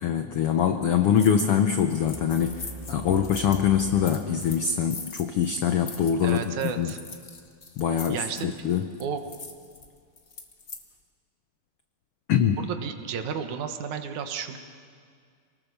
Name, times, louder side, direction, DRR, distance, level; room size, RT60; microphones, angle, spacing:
voice 1, 0.0-2.6 2.9-6.9 7.8-9.0 12.3-12.6, left 8 dB, 80° left, 7 dB, 1.3 m, -24 dB
sound 1, 1.1-1.5 1.8-10.8, left 4 dB, 45° left, 0.8 m, -43 dB
sound 2, 2.0-5.0, right 2 dB, 15° right, 1.7 m, -43 dB
voice 2, 6.2-7.0 8.1-8.6 9.0-9.2 12.6-14.6, right 7 dB, 70° right, 7 dB, 2.6 m, -32 dB
27.5 x 19.5 x 6.8 m, 2.1 s
omnidirectional pair, 3.6 m